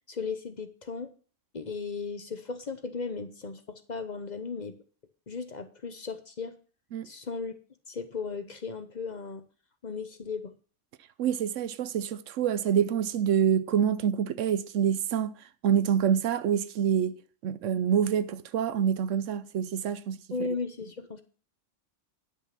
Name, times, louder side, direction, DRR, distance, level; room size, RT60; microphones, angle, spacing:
voice 1, 0.1-1.1 1.5-4.8 5.3-6.6 7.0-7.6 7.9-9.4 9.8-10.5 20.3-21.2, left 4 dB, 40° left, 0.9 m, -36 dB
voice 2, 11.2-15.3 15.6-20.2, right 8 dB, 85° right, 1.0 m, -26 dB
9.9 x 6.1 x 5.9 m
omnidirectional pair, 1.2 m